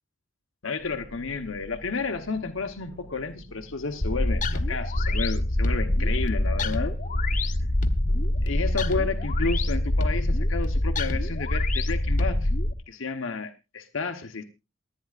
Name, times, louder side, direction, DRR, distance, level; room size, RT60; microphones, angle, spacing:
voice 1, 0.6-6.9 8.4-12.5 12.9-14.4, left 4 dB, 85° left, 5 dB, 1.0 m, -31 dB
sound 1, 0.8-10.2, left 1 dB, 65° right, 4.7 m, -47 dB
sound 2, 4.0-12.7, left 1 dB, 40° left, 0.9 m, -25 dB
28.0 x 9.3 x 2.5 m, 0.27 s
head